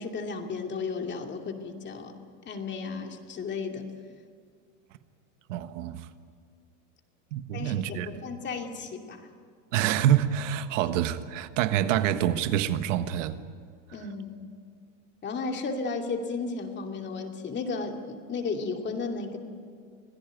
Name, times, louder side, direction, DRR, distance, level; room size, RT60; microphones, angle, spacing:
voice 1, 0.0-2.1 2.5-3.9 7.5-9.3 13.9-14.4 15.2-19.4, left 4 dB, 30° left, 2.6 m, -34 dB
voice 2, 5.5-6.1 7.3-8.1 9.7-13.4, right 11 dB, 75° right, 1.4 m, -26 dB
25.5 x 17.0 x 9.3 m
supercardioid pair, 120°, 38 cm